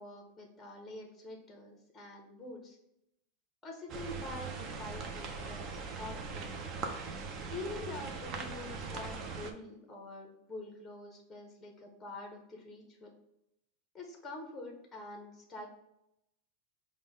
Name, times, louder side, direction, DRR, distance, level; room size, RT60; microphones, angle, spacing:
voice 1, 0.0-2.8 3.6-6.7 7.5-13.1 13.9-15.7, left 2 dB, 10° left, 1 dB, 0.7 m, -46 dB
sound 1, 3.9-9.5, right 4 dB, 30° right, 0.5 m, -40 dB
4.9 x 2.1 x 4.0 m, 0.81 s
supercardioid pair, 165°, 0 cm